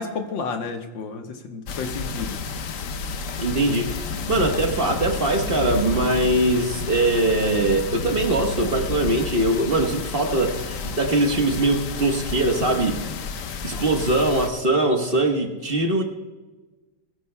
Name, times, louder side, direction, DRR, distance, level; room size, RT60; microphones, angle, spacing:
voice 1, 0.0-2.3, left 4 dB, 85° left, 5 dB, 1.9 m, -31 dB
sound 1, 1.7-14.5, left 5 dB, 60° left, 0.9 m, -31 dB
voice 2, 3.4-13.0 13.6-16.0, right 2 dB, 35° right, 3 dB, 1.2 m, -22 dB
20.5 x 15.5 x 2.2 m, 1.2 s
omnidirectional pair, 2.0 m